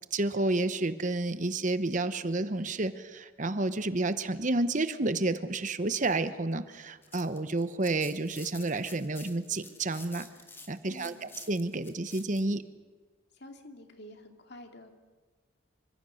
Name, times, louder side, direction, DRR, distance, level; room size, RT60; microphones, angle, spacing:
voice 1, 0.1-10.3 10.7-12.6, right 2 dB, 40° right, 11 dB, 0.9 m, -30 dB
sound 1, 6.8-12.4, left 3 dB, 10° left, 2.0 m, -50 dB
voice 2, 10.9-11.3 13.3-14.9, left 1 dB, 55° left, 4 dB, 2.6 m, -49 dB
27.0 x 25.0 x 6.5 m, 1.3 s
head